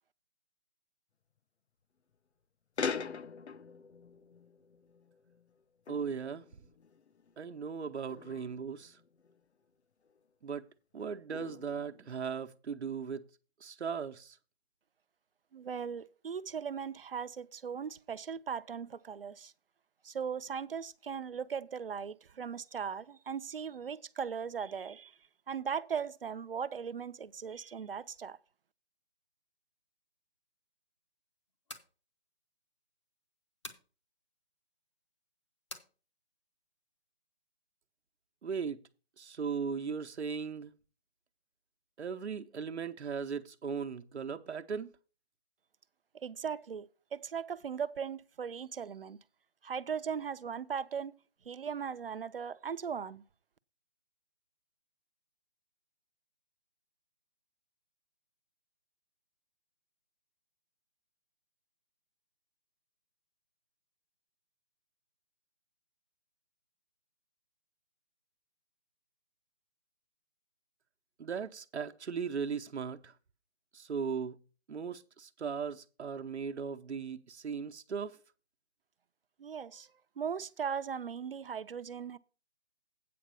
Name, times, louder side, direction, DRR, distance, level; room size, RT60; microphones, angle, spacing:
sound 1, 2.8-5.6 5.9-7.4 8.1-9.4 10.1-10.2 11.0-12.3, left 5 dB, 85° left, 0.9 m, -43 dB
voice 1, 5.9-6.4 7.4-9.0 10.4-10.6 10.9-13.2 13.6-14.4 38.4-38.8 39.2-40.7 42.0-44.9 71.2-73.1 73.7-74.4 74.7-78.2, right 6 dB, 85° right, 0.9 m, -37 dB
voice 2, 15.5-19.5 20.0-25.2 25.5-28.4 46.1-49.2 49.6-51.1 51.5-53.2 79.4-79.9 80.2-82.2, right 7 dB, 60° right, 0.6 m, -38 dB
sound 2, 31.5-31.9 33.6-33.9 35.7-35.9, left 1 dB, 25° left, 0.7 m, -46 dB
8.6 x 5.1 x 6.8 m
hypercardioid pair, 175°, 33 cm